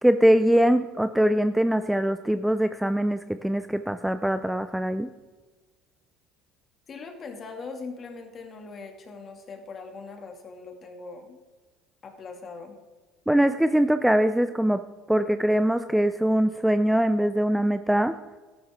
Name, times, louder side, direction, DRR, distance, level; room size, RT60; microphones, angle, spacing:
voice 1, 0.0-5.1 13.3-14.8 15.1-18.2, right 1 dB, 5° right, 11 dB, 0.4 m, -22 dB
voice 2, 6.9-11.4 12.0-12.8, left 4 dB, 35° left, 4 dB, 2.3 m, -41 dB
13.0 x 12.0 x 3.6 m, 1.3 s
supercardioid pair, 110°, 0 cm